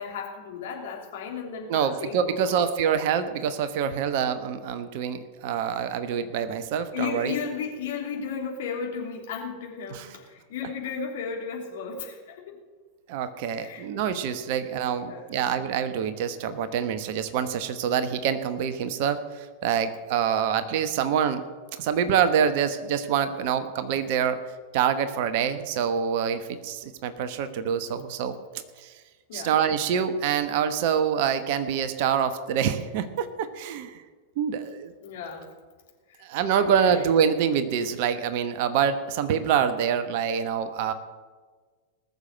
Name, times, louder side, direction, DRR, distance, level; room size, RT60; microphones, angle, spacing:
voice 1, 0.0-2.7 6.9-12.6 13.6-13.9 15.0-15.3 29.3-29.5 35.0-35.5 36.1-36.2 36.8-37.0, left 6 dB, 55° left, 0 dB, 3.2 m, -34 dB
voice 2, 1.7-7.4 9.9-10.1 13.1-21.4 21.8-24.4 24.7-28.4 28.8-28.9 29.3-33.9 34.4-34.9 36.2-40.9, right 8 dB, 50° right, 11 dB, 1.1 m, -26 dB
19.5 x 6.8 x 7.7 m, 1.4 s
figure-of-eight pair, 90°, 0 cm